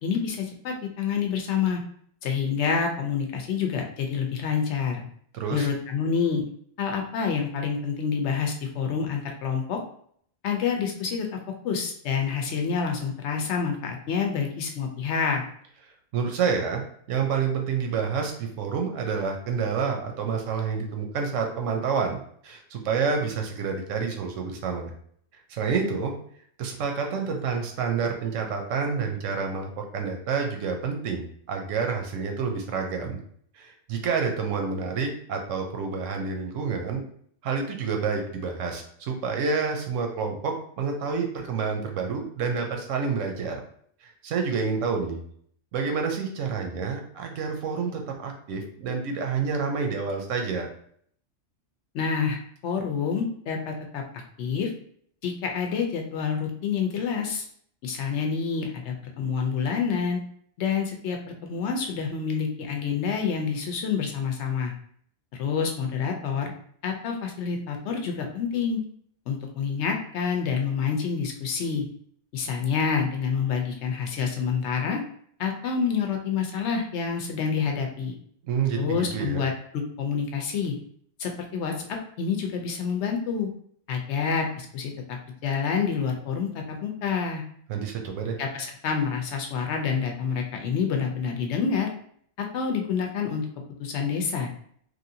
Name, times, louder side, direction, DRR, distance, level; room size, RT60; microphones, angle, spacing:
voice 1, 0.0-1.8 2.2-5.0 5.5-6.4 6.8-9.8 10.4-11.3 11.6-15.4 51.9-54.0 54.4-54.7 55.2-57.4 57.8-60.2 60.6-64.7 65.4-66.5 66.8-68.8 69.3-71.8 72.3-75.0 75.4-78.1 78.8-80.7 81.2-83.5 83.9-85.2 85.4-87.4 88.4-91.9 92.4-93.5 93.8-94.5, left 6 dB, 70° left, 3 dB, 0.9 m, -28 dB
voice 2, 5.3-5.7 16.1-16.8 17.1-22.2 22.4-24.9 25.5-26.1 26.6-33.2 33.5-37.0 37.4-43.6 44.0-45.2 45.7-50.7 78.4-79.4 87.7-88.4, right 5 dB, 90° right, 3 dB, 1.0 m, -28 dB
3.1 x 2.5 x 2.7 m, 0.62 s
omnidirectional pair, 1.3 m